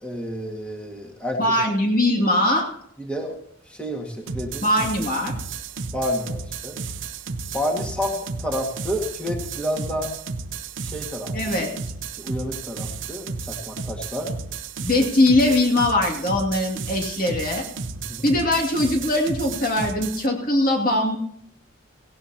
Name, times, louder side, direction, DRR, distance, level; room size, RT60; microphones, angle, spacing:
voice 1, 0.0-1.4 3.0-3.4 3.7-4.7 5.9-6.8 7.5-10.1 10.8-11.3 12.2-14.3 18.1-18.3, equal, 5° left, 0 dB, 1.8 m, -29 dB
voice 2, 1.4-2.7 4.6-5.3 11.3-11.7 14.8-17.6 18.2-21.2, left 1 dB, 45° left, 1 dB, 2.4 m, -21 dB
sound 1, 4.3-20.3, right 4 dB, 80° right, 0.8 m, -33 dB
17.5 x 17.0 x 2.9 m, 0.70 s
head